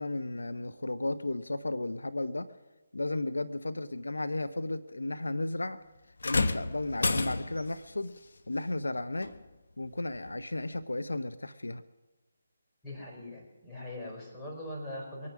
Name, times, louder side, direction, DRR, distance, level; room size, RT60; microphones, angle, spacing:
voice 1, 0.0-2.5 2.9-5.8 6.2-8.1 8.5-9.3 9.8-11.8, left 2 dB, 85° left, 11 dB, 0.7 m, -34 dB
sound 1, 6.2-7.8 9.2-9.4 10.2-10.3, left 3 dB, 70° left, 1.1 m, -30 dB
voice 2, 12.8-15.3, left 1 dB, 10° left, -5 dB, 4.9 m, -41 dB
22.5 x 9.6 x 6.2 m, 1.1 s
figure-of-eight pair, 150°, 0 cm